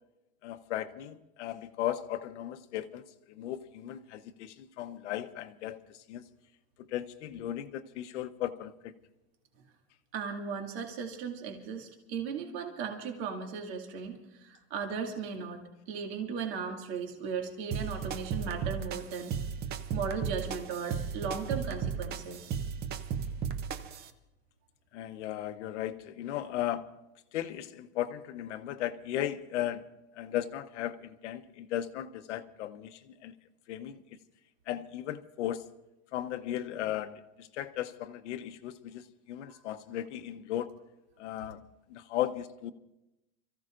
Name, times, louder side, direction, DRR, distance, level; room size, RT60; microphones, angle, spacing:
voice 1, 0.4-5.8 6.1-6.2 6.8-8.9 24.9-26.9 27.3-29.8 30.1-33.3 33.7-34.0 34.7-35.6 36.1-40.7 41.2-41.6 41.9-42.7, left 12 dB, 85° left, 1.0 m, -36 dB
voice 2, 10.1-19.3 19.9-22.6 39.5-39.6, right 6 dB, 60° right, 2.4 m, -37 dB
sound 1, 17.7-24.1, right 7 dB, 30° right, 0.6 m, -35 dB
29.0 x 15.0 x 2.5 m
supercardioid pair, 160°, 35 cm